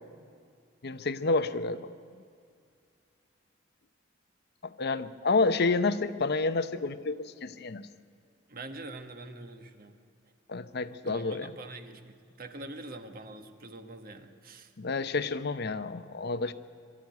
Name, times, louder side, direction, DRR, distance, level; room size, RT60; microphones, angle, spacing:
voice 1, 0.8-1.9 4.6-7.9 10.5-11.5 14.8-16.5, left 3 dB, 55° left, 11 dB, 0.7 m, -29 dB
voice 2, 8.5-10.0 11.0-14.7, right 2 dB, 50° right, 7 dB, 1.3 m, -44 dB
23.0 x 12.5 x 9.4 m, 2.3 s
head